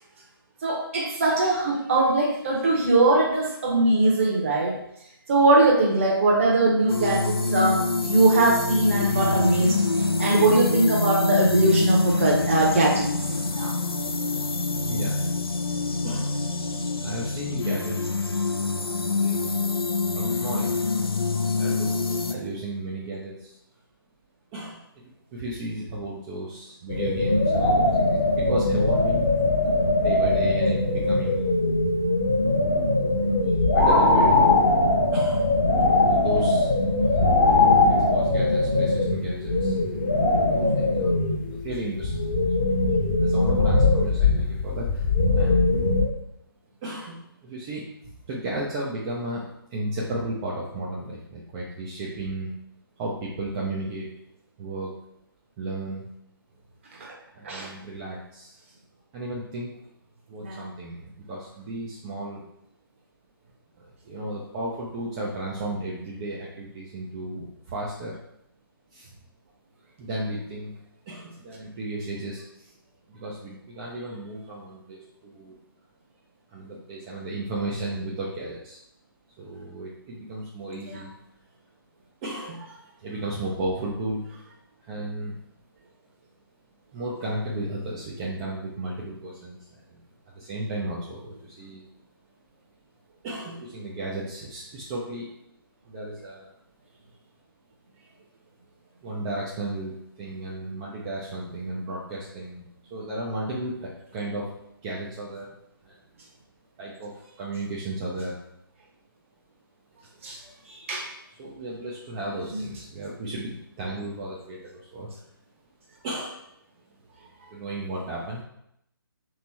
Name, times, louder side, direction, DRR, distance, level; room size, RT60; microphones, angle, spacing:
voice 1, 0.6-4.7 5.3-13.1 13.6-13.7 57.0-57.1 57.4-57.7 60.4-60.6 80.7-81.0 110.2-110.4 110.7-111.1 112.5-112.6, right 2 dB, 35° right, -1 dB, 0.9 m, -21 dB
sound 1, 6.9-22.3, left 3 dB, 80° left, 0.4 m, -26 dB
voice 2, 14.8-15.2 16.0-16.4 17.0-18.8 19.1-19.6 20.1-22.0 22.3-23.6 24.5-29.3 30.0-31.4 33.7-34.4 35.1-35.5 35.9-36.7 37.9-39.8 40.4-41.1 41.6-42.2 42.6-42.8 43.1-45.0 45.3-45.6 46.8-49.4 49.7-52.5 53.0-54.1 54.6-54.9 55.6-56.1 57.3-58.5 59.1-59.7 60.3-62.4 63.8-68.1 68.9-69.1 70.0-70.7 71.1-72.7 73.1-75.6 76.5-78.8 79.4-81.1 82.2-82.7 83.0-84.3 84.9-85.4 86.9-90.0 90.4-91.8 93.2-95.3 95.9-96.5 99.0-102.6 102.9-104.5 104.8-105.5 105.8-105.9 106.8-108.3 111.4-115.1 116.0-116.4 117.5-118.4, right 1 dB, 15° right, -6 dB, 0.4 m, -34 dB
sound 2, 26.9-46.0, left 2 dB, 25° left, 0.8 m, -21 dB
3.3 x 3.1 x 4.1 m, 0.76 s
figure-of-eight pair, 140°, 12 cm